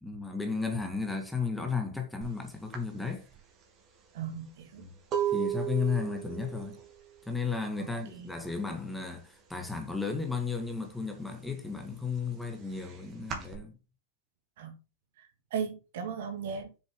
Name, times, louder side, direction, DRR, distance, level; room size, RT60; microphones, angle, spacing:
voice 1, 0.0-3.3 4.8-4.9 5.3-6.8 7.3-13.8, left 5 dB, 5° left, 1.8 m, -34 dB
sound 1, 2.2-2.4 2.7-8.4 8.7-9.2 9.5-10.6 11.0-13.6, right 10 dB, 30° right, 2.7 m, -36 dB
voice 2, 4.1-4.8 7.8-8.3 14.6-14.8 15.2-16.8, right 6 dB, 55° right, 2.4 m, -37 dB
7.3 x 7.0 x 3.7 m
figure-of-eight pair, 90°, 0 cm